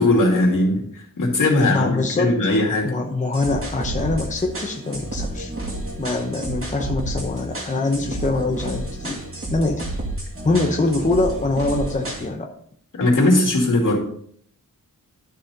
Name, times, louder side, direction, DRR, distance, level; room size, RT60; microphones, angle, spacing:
voice 1, 0.0-2.9 12.9-14.0, left 2 dB, 70° left, -3 dB, 2.7 m, -19 dB
voice 2, 1.5-2.4 2.8-5.5 6.0-9.2 9.5-9.9 10.4-12.5, left 2 dB, 20° left, 2 dB, 0.8 m, -24 dB
sound 1, 3.3-12.3, right 1 dB, 40° right, 2.4 m, -30 dB
12.5 x 4.3 x 3.9 m, 0.64 s
wide cardioid pair, 160°, 33 cm